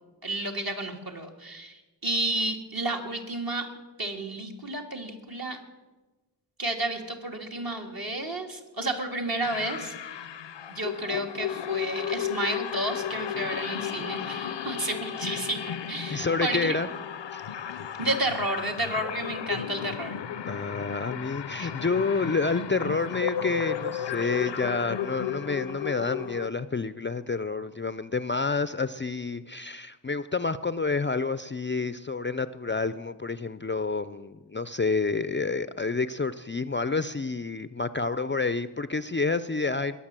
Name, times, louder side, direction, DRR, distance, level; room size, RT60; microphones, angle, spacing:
voice 1, 0.2-3.7 4.0-5.6 6.6-10.2 10.7-16.8 18.0-20.2 21.6-21.7, right 2 dB, 55° right, 2 dB, 2.1 m, -31 dB
sound 1, 9.4-26.5, left 9 dB, 85° left, 0.6 m, -34 dB
voice 2, 16.1-16.9 17.3-17.4 20.5-40.0, left 4 dB, 30° left, 14 dB, 0.4 m, -29 dB
21.0 x 7.1 x 7.5 m, 1.2 s
wide cardioid pair, 85°, 42 cm